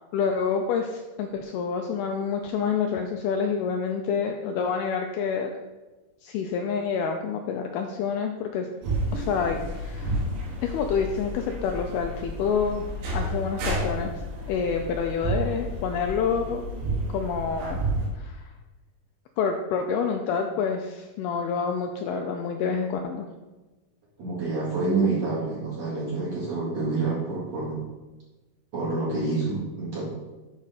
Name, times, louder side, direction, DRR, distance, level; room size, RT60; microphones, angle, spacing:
voice 1, 0.1-5.6 6.2-8.7 9.1-10.2 10.6-12.8 13.1-14.1 14.5-16.6 17.1-17.8 18.2-18.5 19.4-23.3, left 6 dB, 85° left, 4 dB, 2.2 m, -28 dB
sound 1, 8.8-18.1, right 1 dB, 85° right, 3.7 m, -31 dB
voice 2, 24.2-27.8 28.7-30.0, right 3 dB, 50° right, -7 dB, 2.7 m, -27 dB
7.5 x 6.1 x 4.1 m, 1.1 s
omnidirectional pair, 4.8 m